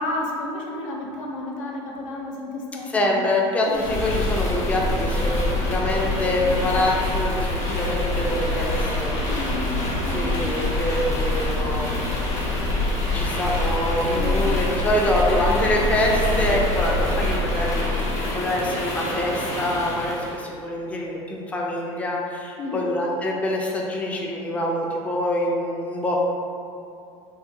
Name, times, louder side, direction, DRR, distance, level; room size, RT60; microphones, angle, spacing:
voice 1, 0.0-4.0 6.4-6.7 9.2-10.6 11.7-12.5 14.1-14.6 22.6-22.9, left 2 dB, 80° left, -1 dB, 0.5 m, -32 dB
voice 2, 2.9-9.2 10.1-12.1 13.1-26.2, left 1 dB, 10° left, -1 dB, 0.3 m, -25 dB
sound 1, 3.7-20.4, left 1 dB, 40° left, 1.1 m, -25 dB
3.8 x 2.1 x 2.5 m, 2.5 s
hypercardioid pair, 90°, 17 cm